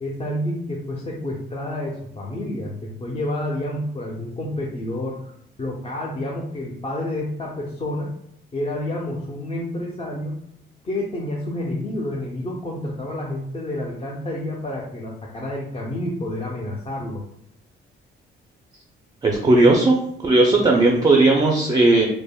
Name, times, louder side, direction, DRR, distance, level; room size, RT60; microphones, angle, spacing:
voice 1, 0.0-5.3 5.6-8.1 8.5-10.4 10.8-17.2, left 1 dB, 30° left, -3 dB, 0.5 m, -29 dB
voice 2, 19.2-22.1, right 2 dB, 20° right, 0 dB, 0.4 m, -16 dB
3.4 x 2.1 x 2.2 m, 0.71 s
cardioid pair, 90°, 20 cm